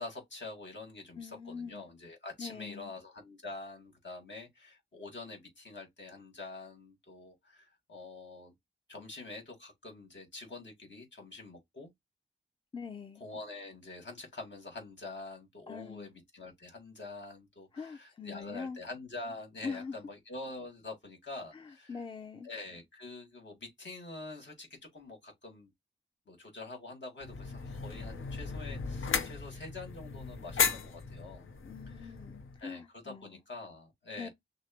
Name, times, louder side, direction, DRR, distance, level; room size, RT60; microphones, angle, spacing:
voice 1, 0.0-8.5 8.9-11.9 13.2-22.0 22.4-24.7 24.9-25.7 26.3-31.5 31.9-32.1 32.6-34.3, left 2 dB, 65° left, 1.9 m, -46 dB
voice 2, 1.2-1.9 2.4-2.9 12.7-13.2 15.7-16.1 17.7-18.8 19.6-20.0 21.5-22.5 31.6-33.3 34.2-34.3, left 5 dB, 25° left, 0.5 m, -43 dB
sound 1, 27.2-32.6, left 5 dB, 90° left, 0.7 m, -36 dB
6.2 x 2.1 x 2.9 m
wide cardioid pair, 85°, 20 cm